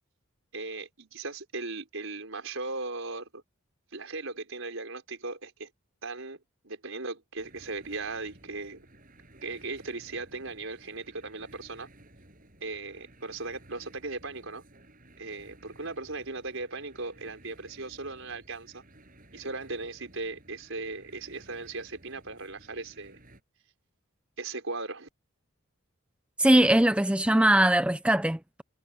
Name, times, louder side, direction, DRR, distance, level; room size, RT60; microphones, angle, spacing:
voice 1, 0.5-3.4 3.9-5.7 6.0-6.4 6.6-8.9 9.4-11.9 12.6-14.6 15.2-18.8 19.3-23.2 24.4-25.1, right 3 dB, 70° right, 4.8 m, -38 dB
sound 1, 7.4-23.4, right 1 dB, 40° right, 7.6 m, -56 dB
voice 2, 26.4-28.6, right 1 dB, 5° right, 0.5 m, -21 dB
head